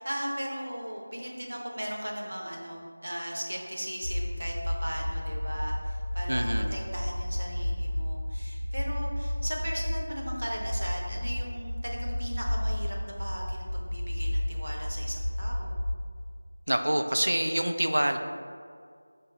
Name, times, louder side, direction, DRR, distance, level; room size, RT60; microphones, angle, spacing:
voice 1, 0.0-15.9, equal, 65° right, -1 dB, 0.7 m, -37 dB
sound 1, 4.0-16.0, left 1 dB, 70° left, 0.5 m, -32 dB
voice 2, 6.3-6.7 16.7-18.2, right 1 dB, 85° right, 6 dB, 0.3 m, -26 dB
5.1 x 2.0 x 3.8 m, 2.1 s
figure-of-eight pair, 180°, 0 cm